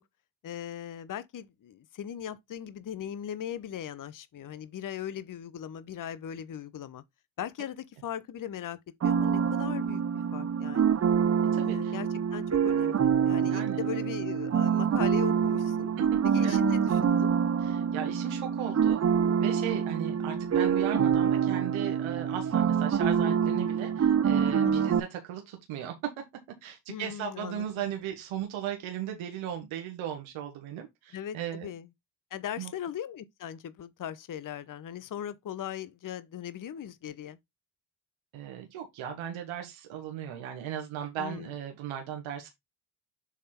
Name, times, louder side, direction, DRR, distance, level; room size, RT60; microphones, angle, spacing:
voice 1, 0.4-7.0 7.4-10.0 10.3-10.9 11.6-15.9 16.2-17.3 24.6-25.0 26.9-27.7 31.1-31.9 32.3-37.4 41.2-41.5, left 10 dB, 40° left, 0.9 m, -39 dB
sound 1, 9.0-25.0, right 7 dB, 30° right, 0.7 m, -26 dB
voice 2, 11.5-11.9 13.4-13.8 16.4-16.6 17.6-19.1 19.4-26.2 26.6-31.7 32.6-32.7 38.3-42.5, right 9 dB, 70° right, 1.5 m, -37 dB
7.3 x 3.5 x 4.3 m
supercardioid pair, 60°, 49 cm